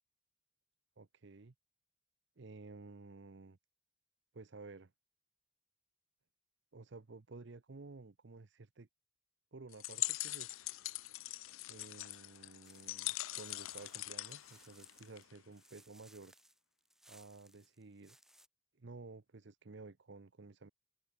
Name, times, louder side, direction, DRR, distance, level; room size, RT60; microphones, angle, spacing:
voice 1, 1.0-1.5 2.4-3.6 4.3-4.9 6.7-8.9 9.5-10.7 11.7-16.3 17.1-18.2 18.8-20.7, right 3 dB, 60° right, 0.7 m, -53 dB
sound 1, 9.7-15.4, left 17 dB, 80° left, 0.6 m, -42 dB
sound 2, 12.6-18.5, right 1 dB, ahead, 7.0 m, -65 dB
open air
head